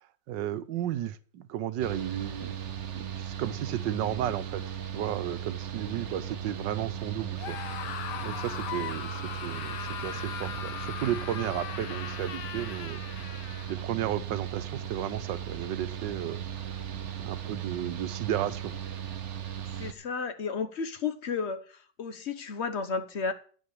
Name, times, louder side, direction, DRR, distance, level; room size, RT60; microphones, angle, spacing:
voice 1, 0.3-2.5 2.9-4.6 4.9-8.0 8.2-13.0 13.7-16.4 17.2-18.7, right 11 dB, 75° right, 1.5 m, -33 dB
Mechanical fan, 1.8-19.9, right 9 dB, 50° right, 1.1 m, -37 dB
Screaming, 7.3-13.8, left 11 dB, 70° left, 1.3 m, -39 dB
voice 2, 19.8-23.3, left 5 dB, 45° left, 1.1 m, -33 dB
13.0 x 4.8 x 8.5 m
omnidirectional pair, 2.0 m